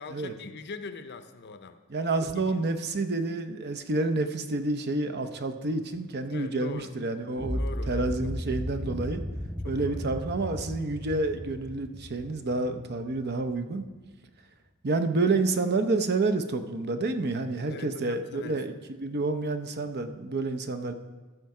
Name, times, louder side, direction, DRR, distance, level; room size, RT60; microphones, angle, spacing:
voice 1, 0.0-1.8 2.2-2.4 6.3-7.0 7.6-8.3 9.6-10.2 17.7-18.6, left 4 dB, 50° left, 9 dB, 0.6 m, -42 dB
voice 2, 1.9-9.2 9.7-13.9 14.8-20.9, right 3 dB, 50° right, 8 dB, 0.7 m, -29 dB
sound 1, 7.4-13.4, equal, ahead, 0.6 m, -35 dB
13.5 x 6.6 x 4.8 m, 1.3 s
head